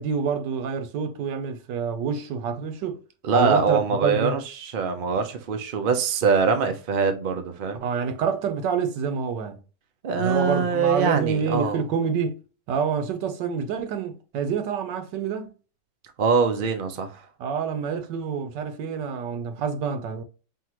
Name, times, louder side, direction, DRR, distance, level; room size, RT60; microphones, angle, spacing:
voice 1, 0.0-3.0 3.3-4.4 7.8-9.6 10.2-12.4 12.7-15.5 17.4-20.2, right 6 dB, 90° right, 1.4 m, -27 dB
voice 2, 3.2-7.9 10.0-11.8 16.2-17.3, right 5 dB, 50° right, 0.6 m, -23 dB
5.7 x 2.6 x 3.0 m
omnidirectional pair, 1.8 m